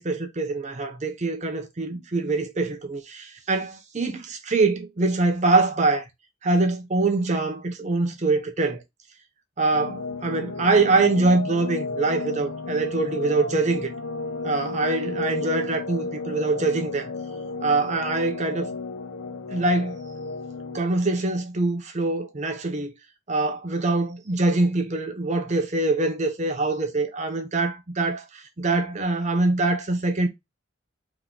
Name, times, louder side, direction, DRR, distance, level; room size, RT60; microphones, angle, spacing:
voice 1, 0.0-6.1 6.4-8.8 9.6-13.9 14.4-17.1 17.6-18.7 19.5-20.0 20.7-22.9 23.3-30.3, right 3 dB, 35° right, 0.6 m, -24 dB
sound 1, 9.7-20.8, left 3 dB, 90° left, 0.8 m, -33 dB
3.6 x 2.9 x 3.8 m
head